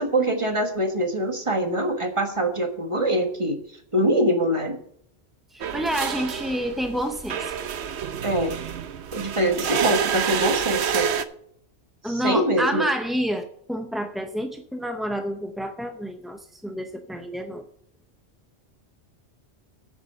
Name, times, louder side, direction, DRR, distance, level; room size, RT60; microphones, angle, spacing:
voice 1, 0.0-3.6 3.9-4.8 8.2-8.6 9.1-11.1 12.0-12.9, right 1 dB, 25° right, 5 dB, 1.5 m, -24 dB
voice 2, 5.5-7.5 12.0-17.6, equal, ahead, 5 dB, 0.4 m, -28 dB
sound 1, 5.6-11.3, right 8 dB, 75° right, 1.0 m, -28 dB
9.0 x 8.2 x 5.7 m, 0.68 s
omnidirectional pair, 1.1 m